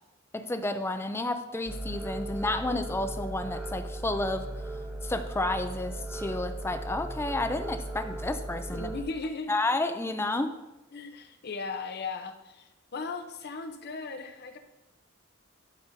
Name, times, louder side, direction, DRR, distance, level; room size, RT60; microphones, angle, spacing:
voice 1, 0.3-4.5 5.0-8.9 9.5-10.5, left 2 dB, 10° left, 9 dB, 0.4 m, -31 dB
sound 1, 1.6-9.0, right 2 dB, 5° right, 0.9 m, -37 dB
voice 2, 8.7-9.6 10.9-14.6, left 4 dB, 50° left, 7 dB, 0.7 m, -37 dB
11.5 x 5.4 x 2.7 m, 1.0 s
head